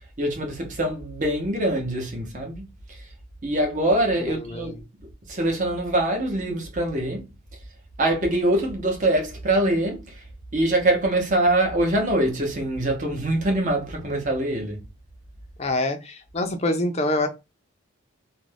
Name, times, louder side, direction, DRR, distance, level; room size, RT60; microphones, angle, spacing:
voice 1, 0.2-3.1 3.4-4.8 5.3-7.3 8.0-10.2 10.5-14.8, right 1 dB, 35° right, 0.8 m, -24 dB
voice 2, 4.2-4.8 15.6-17.3, left 2 dB, 30° left, 0.4 m, -26 dB
2.5 x 2.1 x 3.2 m
head